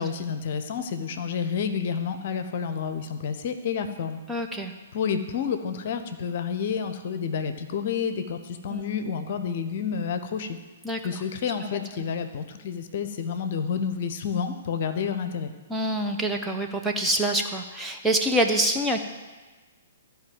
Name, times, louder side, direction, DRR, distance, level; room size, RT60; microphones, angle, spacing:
voice 1, 0.0-4.2 4.9-10.6 11.0-15.5, left 6 dB, 45° left, 9 dB, 0.9 m, -29 dB
voice 2, 4.3-4.7 8.7-8.8 10.8-11.0 15.7-19.0, right 1 dB, 5° right, 1 dB, 0.8 m, -25 dB
13.5 x 5.2 x 7.6 m, 1.3 s
figure-of-eight pair, 115°, 0 cm